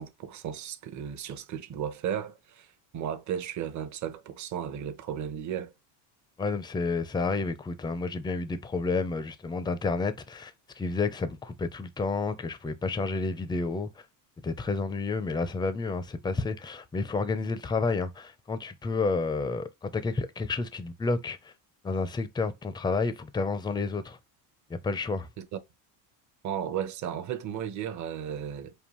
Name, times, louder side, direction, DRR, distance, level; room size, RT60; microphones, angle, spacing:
voice 1, 0.0-5.7 25.4-25.6 26.4-28.7, right 9 dB, 40° right, 0.8 m, -35 dB
voice 2, 6.4-14.0 14.4-21.5 21.8-24.2 24.7-25.3, left 3 dB, 10° left, 0.5 m, -30 dB
5.4 x 2.3 x 3.0 m
supercardioid pair, 105°, 47 cm